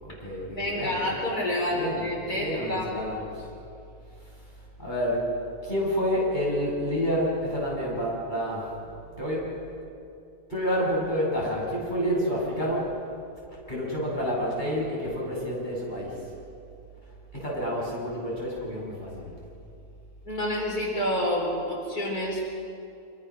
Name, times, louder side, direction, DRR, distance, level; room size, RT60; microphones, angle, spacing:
voice 1, 0.0-1.1 1.7-3.4 4.8-5.3 5.6-8.7 9.2-9.5 10.5-12.9 13.7-16.2 17.3-19.3, equal, 30° left, -5 dB, 7.9 m, -29 dB
voice 2, 0.6-2.9 20.3-22.4, left 1 dB, 70° left, -2 dB, 4.9 m, -28 dB
25.5 x 25.0 x 6.3 m, 2.6 s
omnidirectional pair, 1.7 m